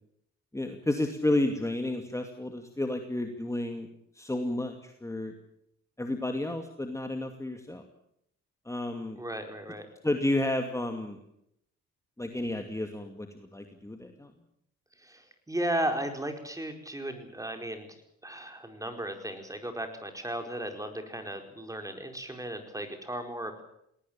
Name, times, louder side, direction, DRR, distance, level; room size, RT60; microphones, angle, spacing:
voice 1, 0.5-3.9 4.1-5.3 6.0-7.8 8.7-9.2 10.0-11.2 12.2-14.3, left 1 dB, 10° left, 5 dB, 2.5 m, -31 dB
voice 2, 9.2-9.9 15.0-17.9 18.2-23.6, right 1 dB, 10° right, 6 dB, 4.7 m, -35 dB
20.5 x 19.0 x 8.8 m, 0.75 s
cardioid pair, 90°, 30 cm